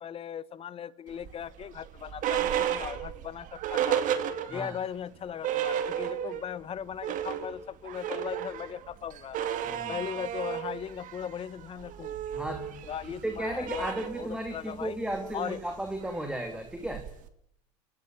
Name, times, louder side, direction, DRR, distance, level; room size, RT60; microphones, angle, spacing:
voice 1, 0.0-4.1 4.5-9.4 9.9-12.2 12.9-13.9 14.1-15.0 15.3-15.6, left 8 dB, 35° left, 18 dB, 1.2 m, -38 dB
sound 1, 1.2-4.8 5.2-5.3 5.4-6.5 6.8-17.3, right 10 dB, 50° right, 2.4 m, -33 dB
voice 2, 9.6-10.0 12.3-17.1, right 1 dB, 5° right, 5 dB, 2.6 m, -35 dB
29.0 x 14.0 x 9.4 m, 0.75 s
supercardioid pair, 100°, 17 cm